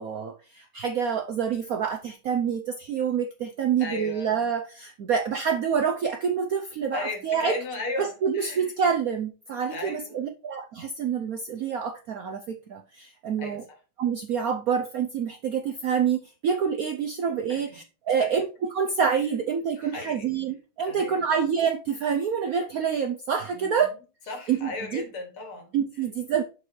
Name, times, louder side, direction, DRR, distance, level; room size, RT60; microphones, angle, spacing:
voice 1, 0.0-7.6 8.0-13.6 14.0-18.4 18.7-24.0 24.5-25.0 25.7-26.4, right 7 dB, 75° right, 0.8 m, -27 dB
voice 2, 3.8-4.5 6.9-8.7 9.7-10.1 13.4-13.8 17.5-17.6 18.2-18.3 19.8-20.3 20.9-21.3 23.5-23.9 24.3-26.1, left 3 dB, 90° left, 2.9 m, -36 dB
6.9 x 6.6 x 3.2 m
omnidirectional pair, 2.3 m